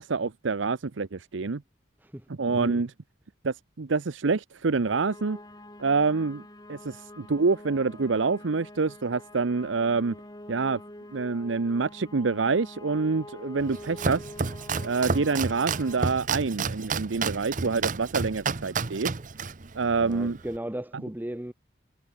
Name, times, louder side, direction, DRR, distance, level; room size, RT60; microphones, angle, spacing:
voice 1, 0.0-1.6 2.4-2.9 3.4-5.4 5.8-6.4 6.7-10.2 10.5-10.8 11.1-14.3 14.8-19.1 19.7-20.4, right 4 dB, 80° right, 0.7 m, -26 dB
voice 2, 2.0-2.8 20.0-21.5, right 1 dB, 10° right, 0.6 m, -36 dB
sound 1, 4.9-16.0, left 1 dB, 20° left, 2.8 m, -46 dB
Domestic sounds home sounds, 13.6-20.6, right 4 dB, 40° right, 0.7 m, -31 dB
head